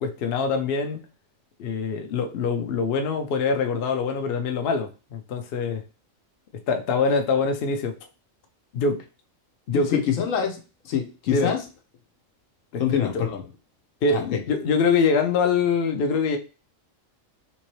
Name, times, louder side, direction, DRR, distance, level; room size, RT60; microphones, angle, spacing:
voice 1, 0.0-1.0 1.6-5.8 6.7-7.9 8.7-9.0 9.7-10.0 11.3-11.5 12.7-13.0 14.0-16.4, left 4 dB, 60° left, 5 dB, 0.7 m, -24 dB
voice 2, 9.7-11.6 12.8-13.4 14.1-14.4, left 8 dB, 85° left, 3 dB, 1.2 m, -25 dB
3.6 x 2.9 x 3.0 m, 0.32 s
omnidirectional pair, 1.4 m